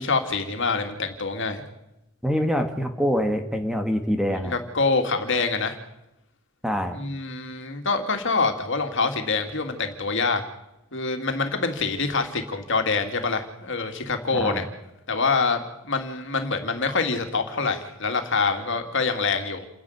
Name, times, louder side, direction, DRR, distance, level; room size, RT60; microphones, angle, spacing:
voice 1, 0.0-1.6 4.4-5.8 6.9-10.4 10.9-14.6 15.1-19.7, left 4 dB, 60° left, 5 dB, 2.8 m, -25 dB
voice 2, 2.2-4.5 6.6-7.0 14.3-14.7, equal, 5° right, 6 dB, 1.8 m, -25 dB
29.0 x 11.0 x 9.8 m, 0.87 s
head